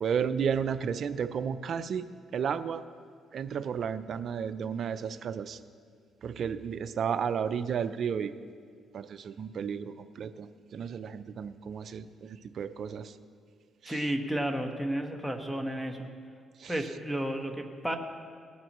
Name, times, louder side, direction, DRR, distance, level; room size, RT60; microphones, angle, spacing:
voice 1, 0.0-2.1 2.3-2.8 3.3-5.6 6.2-8.3 8.9-10.5 10.7-12.3 12.6-13.1 16.6-16.7, right 7 dB, 60° right, 11 dB, 0.5 m, -32 dB
voice 2, 13.8-16.1 16.7-18.0, right 1 dB, ahead, 5 dB, 1.3 m, -32 dB
18.5 x 12.5 x 3.1 m, 2.1 s
cardioid pair, 90°, 0 cm